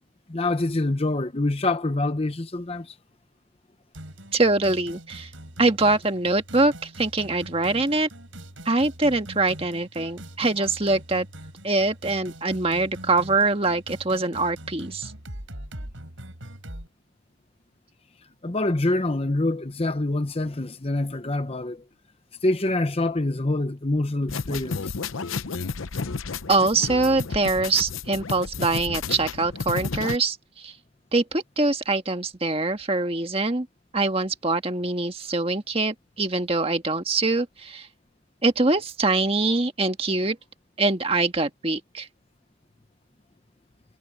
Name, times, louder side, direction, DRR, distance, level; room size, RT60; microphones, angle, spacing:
voice 1, 0.3-3.0 18.4-21.8 22.4-24.9, left 2 dB, 30° left, 0.8 m, -25 dB
sound 1, 3.9-16.9, right 1 dB, 75° right, 5.9 m, -42 dB
voice 2, 4.3-5.3 5.6-8.1 8.6-11.3 11.6-15.1 26.5-30.7 31.1-33.7 33.9-37.9 38.4-40.4 40.8-42.1, right 3 dB, 30° right, 1.6 m, -24 dB
sound 2, 24.3-30.2, left 4 dB, 85° left, 0.8 m, -32 dB
head